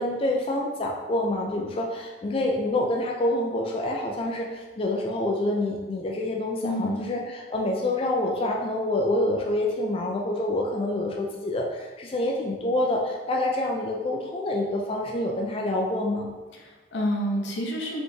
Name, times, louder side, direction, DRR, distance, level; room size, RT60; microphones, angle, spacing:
voice 1, 0.0-16.3, left 1 dB, 35° left, 0 dB, 0.4 m, -27 dB
voice 2, 6.6-7.1 16.5-18.0, equal, 80° left, 0 dB, 0.8 m, -29 dB
4.2 x 3.4 x 3.2 m, 1.2 s
head